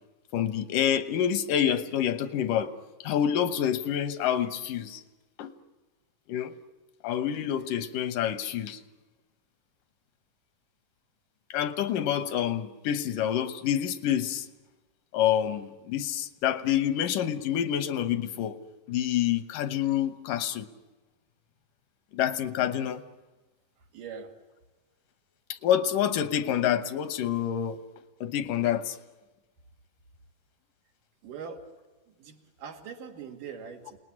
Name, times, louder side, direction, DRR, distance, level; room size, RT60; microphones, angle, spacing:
voice 1, 0.3-2.7 3.0-5.0 5.4-5.5 6.3-6.5 7.0-8.8 11.5-14.5 15.1-18.6 18.9-20.7 22.1-23.0 25.5-27.8 28.2-29.0, left 10 dB, 85° left, 2.7 m, -27 dB
voice 2, 23.8-24.4 31.2-31.7 32.1-34.0, right 6 dB, 85° right, 3.8 m, -42 dB
28.5 x 19.5 x 9.8 m
omnidirectional pair, 3.7 m